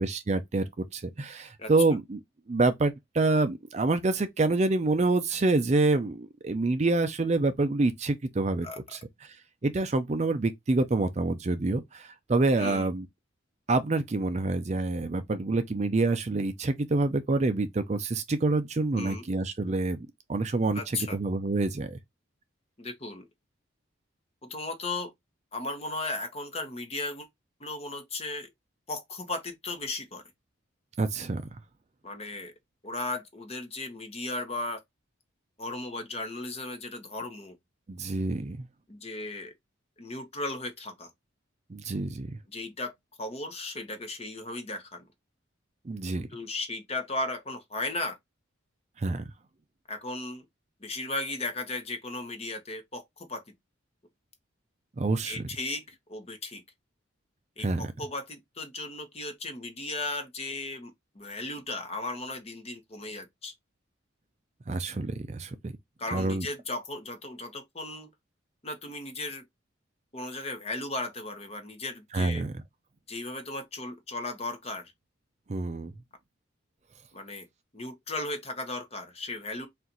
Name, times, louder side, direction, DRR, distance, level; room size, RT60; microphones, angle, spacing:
voice 1, 0.0-2.2 2.5-9.0 9.6-13.1 13.7-22.0 31.0-31.4 37.9-38.7 41.7-42.3 45.9-46.3 49.0-49.2 55.0-55.4 57.6-57.9 64.7-65.7 66.1-66.5 72.1-72.5 75.5-75.9, right 3 dB, 35° right, 0.4 m, -27 dB
voice 2, 12.6-12.9 19.0-19.3 20.7-21.2 22.8-23.3 24.4-25.1 25.5-27.3 27.6-28.5 28.9-30.2 32.0-32.5 32.8-34.8 35.6-37.5 38.9-39.5 40.0-41.1 42.5-42.9 43.2-45.1 46.1-48.2 49.9-50.4 50.8-53.4 55.2-56.6 57.6-63.5 66.0-68.1 68.6-69.4 70.1-72.5 73.1-74.9 77.1-77.5 77.7-79.7, left 2 dB, 30° left, 0.9 m, -36 dB
4.3 x 2.5 x 3.8 m
head